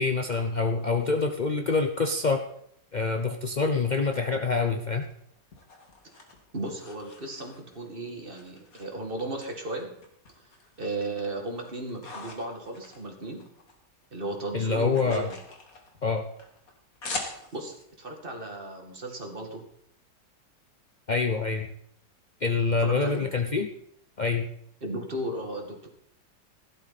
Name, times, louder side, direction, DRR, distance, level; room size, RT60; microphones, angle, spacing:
voice 1, 0.0-2.4 2.9-5.1 14.5-15.3 16.0-16.3 21.1-21.7 22.4-23.7 24.2-24.5, left 4 dB, 75° left, 4 dB, 0.4 m, -26 dB
sound 1, 5.1-7.9 8.4-9.5 9.8-10.8 11.2-13.8 14.0-17.8, left 3 dB, 50° left, 2.4 m, -42 dB
voice 2, 6.5-9.9 10.8-13.4 14.1-15.4 17.3-19.6 22.8-23.2 24.8-25.9, right 1 dB, 30° right, 2 dB, 2.1 m, -35 dB
15.5 x 12.0 x 4.2 m, 0.70 s
omnidirectional pair, 2.0 m